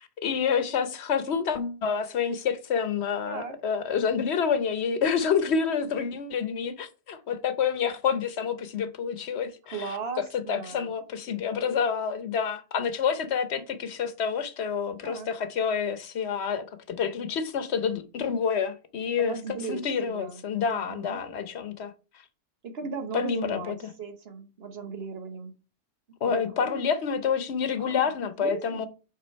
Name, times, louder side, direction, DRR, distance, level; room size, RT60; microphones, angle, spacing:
voice 1, 0.2-10.0 10.3-19.4 19.7-21.9 23.1-23.9 26.2-28.9, left 6 dB, 70° left, 1.1 m, -28 dB
voice 2, 3.2-3.6 9.7-10.9 15.0-15.3 19.2-21.2 22.7-25.5 26.2-26.7 27.8-28.1 28.4-28.9, right 5 dB, 60° right, 1.2 m, -37 dB
7.8 x 3.9 x 4.5 m
omnidirectional pair, 1.2 m